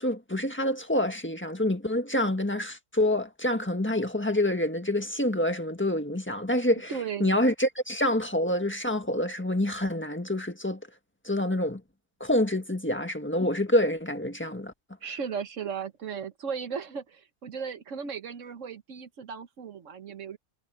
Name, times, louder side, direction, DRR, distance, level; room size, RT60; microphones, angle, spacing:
voice 1, 0.0-6.9 7.2-10.8 11.2-11.8 12.2-14.7, left 1 dB, 10° left, 1.5 m, -27 dB
voice 2, 6.9-7.3 15.0-20.4, right 6 dB, 80° right, 1.5 m, -36 dB
omnidirectional pair, 1.3 m